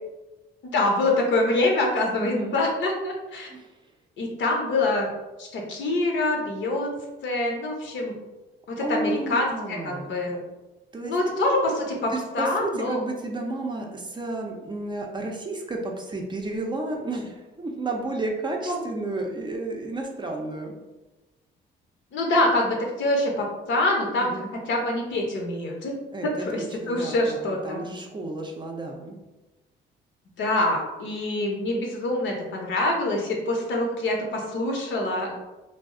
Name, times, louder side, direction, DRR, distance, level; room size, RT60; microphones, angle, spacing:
voice 1, 0.6-3.5 4.2-5.1 5.4-6.9 7.2-8.1 8.7-10.4 11.0-13.0 18.6-18.8 22.1-24.3 24.7-26.0 26.2-27.8 30.4-35.3, left 2 dB, 70° left, 0 dB, 0.7 m, -25 dB
voice 2, 2.2-2.6 3.5-3.7 8.8-10.3 10.9-11.2 12.1-20.8 24.2-24.5 26.1-29.2, right 2 dB, 25° right, 0 dB, 0.5 m, -32 dB
2.3 x 2.0 x 3.5 m, 1.1 s
cardioid pair, 90°, 20 cm